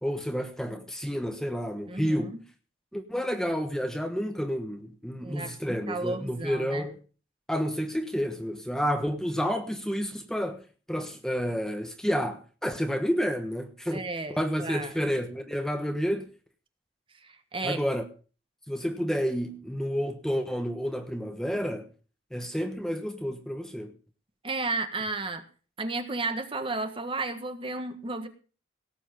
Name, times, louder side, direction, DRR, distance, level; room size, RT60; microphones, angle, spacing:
voice 1, 0.0-2.4 2.9-7.0 7.5-10.6 10.9-16.2 17.6-18.0 18.7-21.9 22.3-23.9, equal, 5° left, 1.2 m, -30 dB
voice 2, 1.9-2.4 5.2-5.5 5.9-6.9 13.9-14.9 17.2-17.8 24.4-25.4 25.8-28.3, right 3 dB, 30° right, 1.5 m, -33 dB
18.0 x 8.3 x 5.3 m
head